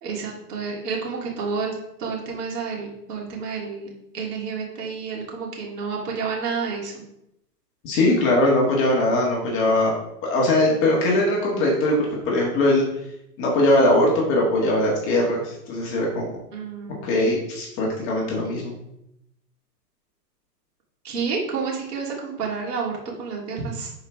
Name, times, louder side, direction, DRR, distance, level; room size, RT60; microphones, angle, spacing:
voice 1, 0.0-7.0 16.5-17.2 21.0-23.9, right 5 dB, 70° right, -2 dB, 3.1 m, -30 dB
voice 2, 7.8-9.9 10.2-12.0 12.3-12.8 13.4-16.3 17.0-18.7, left 1 dB, 25° left, -3 dB, 1.7 m, -20 dB
11.0 x 4.8 x 3.6 m, 0.81 s
hypercardioid pair, 155°, 49 cm